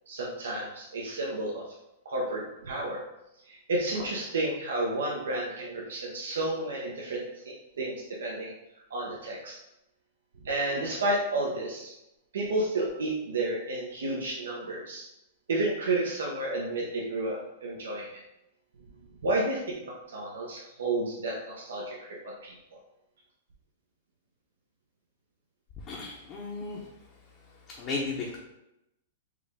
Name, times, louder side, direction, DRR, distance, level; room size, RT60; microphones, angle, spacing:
voice 1, 0.1-1.6 2.0-3.0 3.5-8.5 8.9-9.6 10.4-11.9 12.3-15.0 15.5-18.2 19.2-22.0 22.2-22.8, right 2 dB, 85° right, -3 dB, 0.7 m, -31 dB
voice 2, 25.8-27.1 27.4-28.4, left 3 dB, 35° left, -4 dB, 0.8 m, -36 dB
4.7 x 2.5 x 3.4 m, 0.89 s
hypercardioid pair, 135°, 0 cm